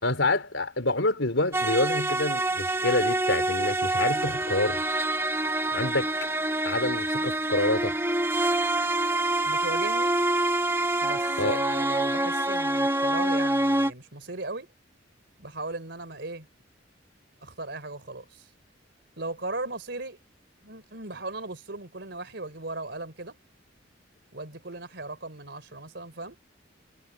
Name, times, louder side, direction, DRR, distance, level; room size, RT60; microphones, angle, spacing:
voice 1, 0.0-4.9 5.7-6.1 6.6-8.0 11.4-11.6, left 2 dB, 85° left, 4.3 m, -27 dB
sound 1, 1.5-13.9, right 2 dB, 15° right, 1.2 m, -26 dB
voice 2, 9.4-10.2 11.0-14.7 15.4-16.5 17.4-18.5 19.2-20.2 20.6-23.4 24.3-26.4, right 2 dB, 65° right, 4.4 m, -37 dB
head